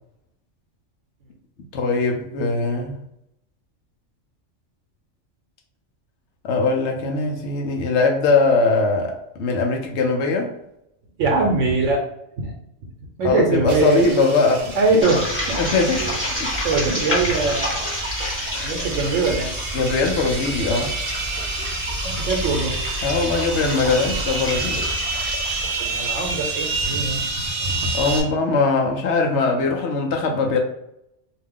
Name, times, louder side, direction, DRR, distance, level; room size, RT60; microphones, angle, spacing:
voice 1, 1.7-2.9 6.4-10.5 13.2-14.7 15.6-16.1 16.4-16.5 19.7-20.9 23.0-24.8 27.9-30.6, left 3 dB, 70° left, 2 dB, 0.8 m, -21 dB
voice 2, 11.2-12.0 12.4-12.5 13.2-14.1 14.7-15.6 15.9-16.2 16.6-17.9 18.5-19.5 22.0-22.8 25.8-27.4, right 3 dB, 80° right, 0 dB, 1.0 m, -22 dB
sound 1, 13.7-28.2, right 3 dB, 50° right, 0.6 m, -29 dB
Água Serralves, 15.0-27.8, left 1 dB, 10° left, 1.2 m, -29 dB
2.5 x 2.3 x 3.4 m, 0.79 s
omnidirectional pair, 1.3 m